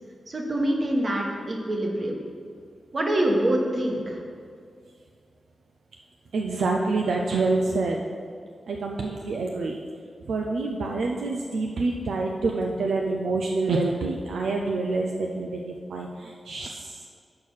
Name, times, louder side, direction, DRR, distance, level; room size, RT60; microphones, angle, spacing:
voice 1, 0.3-2.2 2.9-4.2, right 1 dB, 50° right, 0 dB, 1.3 m, -25 dB
voice 2, 6.3-8.0 8.7-9.8 10.2-17.1, right 3 dB, 80° right, 0 dB, 0.5 m, -27 dB
6.5 x 4.6 x 5.6 m, 2.2 s
cardioid pair, 50°, 0 cm